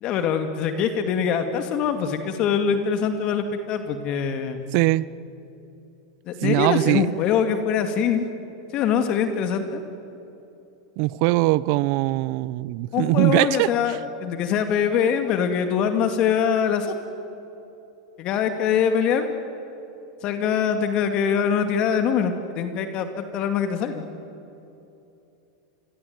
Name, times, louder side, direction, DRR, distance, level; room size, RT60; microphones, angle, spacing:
voice 1, 0.0-4.6 6.3-8.2 8.7-9.8 12.9-17.0 18.2-19.3 20.2-24.0, left 7 dB, 45° left, 7 dB, 2.3 m, -23 dB
voice 2, 4.7-5.0 6.4-7.1 11.0-13.7, right 20 dB, 55° right, 20 dB, 0.7 m, -21 dB
27.5 x 22.0 x 9.5 m, 2.9 s
hypercardioid pair, 115°, 2 cm